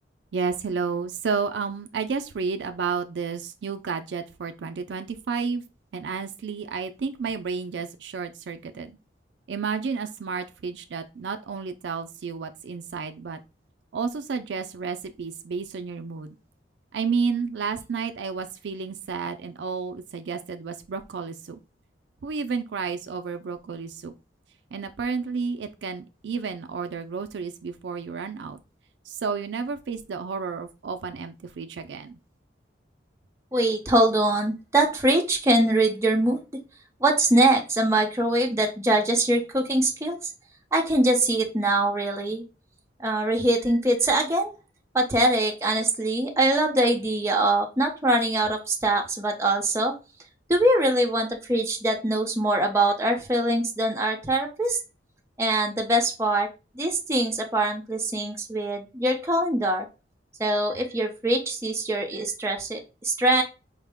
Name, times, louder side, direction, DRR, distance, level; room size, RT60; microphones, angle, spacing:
voice 1, 0.3-5.6 5.9-9.0 9.5-13.4 13.9-16.3 16.9-21.6 22.2-24.1 24.7-28.6 29.1-32.2, right 5 dB, 70° right, 8 dB, 0.4 m, -31 dB
voice 2, 33.5-36.4 37.0-40.2 40.7-42.4 43.0-44.5 44.9-49.9 50.5-54.8 55.4-56.5 56.8-59.9 60.4-63.4, right 1 dB, 15° right, 1 dB, 0.7 m, -23 dB
4.7 x 2.1 x 3.4 m, 0.28 s
head